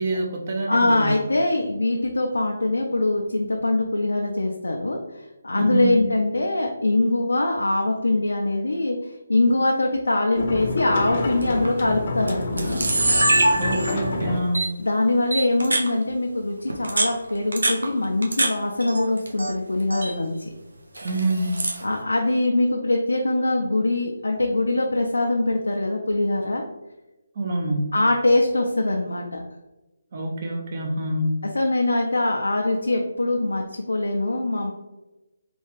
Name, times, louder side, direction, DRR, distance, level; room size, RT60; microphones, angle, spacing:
voice 1, 0.0-1.2 5.5-6.0 13.6-14.7 21.0-21.6 27.4-27.9 30.1-31.4, right 1 dB, 45° right, 1 dB, 0.6 m, -26 dB
voice 2, 0.7-9.0 9.3-12.7 14.8-20.3 21.8-26.6 27.9-29.4 31.5-34.7, left 2 dB, 85° left, 1 dB, 0.4 m, -23 dB
sound 1, 10.3-14.4, left 2 dB, 45° left, 0.6 m, -28 dB
Camera, 11.4-11.7 12.3-12.4 12.6-14.1 14.5-14.7 15.3-15.9 16.7-18.5 18.8-19.5 19.8-20.1 20.9-21.8, right 1 dB, 85° right, 0.7 m, -23 dB
3.4 x 2.3 x 3.1 m, 1.0 s
figure-of-eight pair, 150°, 0 cm